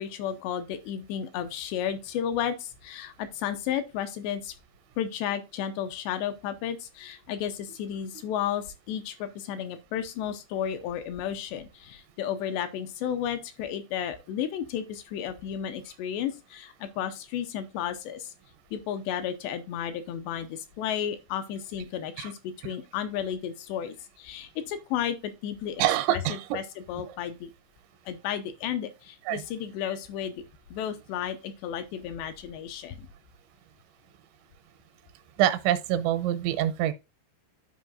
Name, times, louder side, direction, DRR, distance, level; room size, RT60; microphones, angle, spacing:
voice 1, 0.0-4.5 5.0-18.3 18.7-25.8 26.1-26.6 26.9-27.5 28.1-30.4 30.7-33.1, left 9 dB, 85° left, 2.7 m, -33 dB
voice 2, 25.8-26.6 29.3-29.4 35.4-36.9, right 12 dB, 85° right, 3.1 m, -25 dB
12.5 x 4.7 x 2.4 m
omnidirectional pair, 5.2 m